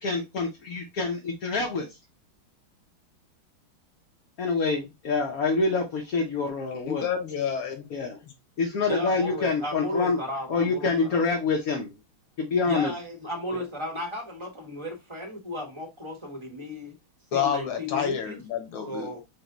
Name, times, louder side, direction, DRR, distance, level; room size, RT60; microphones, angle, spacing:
voice 1, 0.0-2.0 4.4-7.1 7.9-8.2 8.6-10.2 10.5-11.9 12.4-12.9 13.5-13.6, left 4 dB, 60° left, 1.0 m, -26 dB
voice 2, 6.7-8.1 17.3-19.2, left 8 dB, 85° left, 2.0 m, -29 dB
voice 3, 8.9-11.2 12.6-16.9 17.3-18.4 18.8-19.2, left 1 dB, 20° right, 0.9 m, -35 dB
6.0 x 2.2 x 3.8 m
omnidirectional pair, 2.2 m